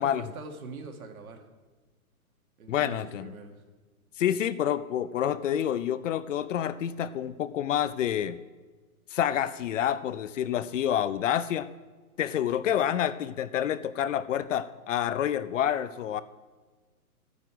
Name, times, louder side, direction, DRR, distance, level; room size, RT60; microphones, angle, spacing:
voice 1, 0.0-1.4 2.6-3.6, right 4 dB, 70° right, 4 dB, 2.1 m, -43 dB
voice 2, 2.7-3.3 4.2-8.4 9.1-11.7 12.2-16.2, left 10 dB, 55° left, 15 dB, 0.6 m, -28 dB
14.0 x 9.5 x 4.9 m, 1.4 s
hypercardioid pair, 155°, 44 cm